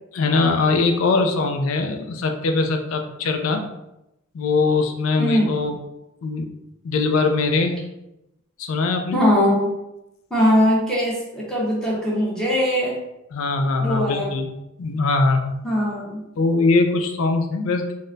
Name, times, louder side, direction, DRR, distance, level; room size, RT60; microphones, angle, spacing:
voice 1, 0.1-3.7 4.3-5.8 6.2-6.5 6.8-7.8 8.6-9.2 13.3-14.5 14.8-15.5 16.4-17.9, left 3 dB, 80° left, 5 dB, 0.4 m, -21 dB
voice 2, 5.2-5.5 9.1-9.7 10.3-13.0 13.8-14.2 15.6-16.2, equal, 5° left, -6 dB, 0.8 m, -20 dB
3.9 x 2.1 x 2.5 m, 0.89 s
head